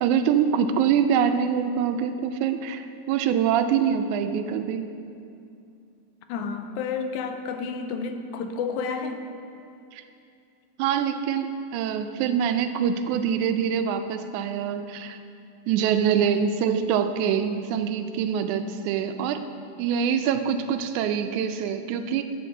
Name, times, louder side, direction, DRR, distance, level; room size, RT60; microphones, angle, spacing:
voice 1, 0.0-4.9 9.9-10.0 10.8-15.2 15.7-19.4 19.8-22.2, right 8 dB, 90° right, 8 dB, 2.0 m, -24 dB
voice 2, 6.3-9.2, left 5 dB, 90° left, 7 dB, 2.1 m, -30 dB
14.5 x 6.5 x 3.9 m, 2.6 s
omnidirectional pair, 3.4 m